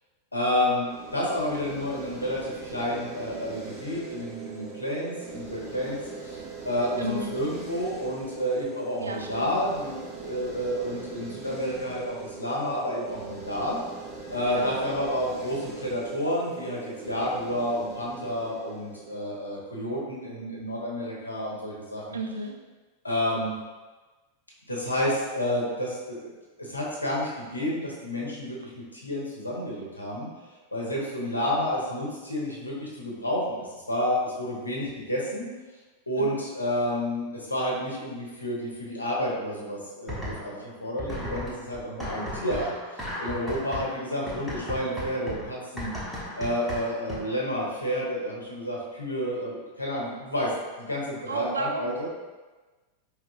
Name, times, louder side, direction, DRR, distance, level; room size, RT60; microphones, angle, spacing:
voice 1, 0.3-6.4 6.6-13.8 14.3-22.2 23.0-23.5 24.7-26.3 26.6-30.3 30.7-35.5 36.1-45.9 46.4-50.5 50.8-52.1, left 1 dB, 80° left, -4 dB, 1.0 m, -30 dB
sound 1, 0.9-19.9, right 4 dB, 20° right, 1.0 m, -41 dB
voice 2, 7.0-7.3 9.0-9.5 14.4-14.8 22.1-22.6 36.2-36.5 51.3-52.1, right 2 dB, 70° right, 3 dB, 0.4 m, -33 dB
sound 2, 40.1-40.7 41.0-47.4, equal, 5° left, 1.0 m, -36 dB
4.8 x 3.1 x 2.4 m, 1.2 s
figure-of-eight pair, 90°, 0 cm